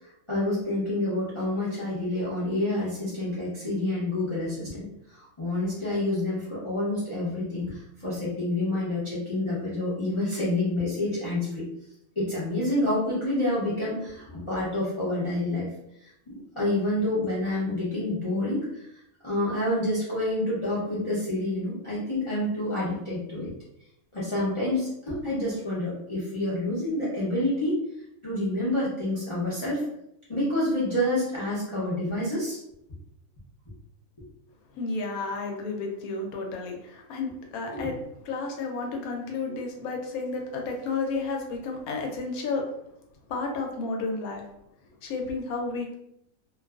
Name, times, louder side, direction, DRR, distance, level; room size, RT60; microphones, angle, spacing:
voice 1, 0.3-11.7 12.2-15.7 16.0-16.1 16.6-18.9 19.2-23.5 24.1-27.8 28.2-29.8 30.3-32.6 37.7-37.9, left 1 dB, 35° left, -9 dB, 0.5 m, -28 dB
voice 2, 34.7-38.0 38.2-42.6 43.3-44.4 45.0-45.9, left 3 dB, 90° left, 2 dB, 1.1 m, -32 dB
2.5 x 2.3 x 2.3 m, 0.78 s
omnidirectional pair, 1.5 m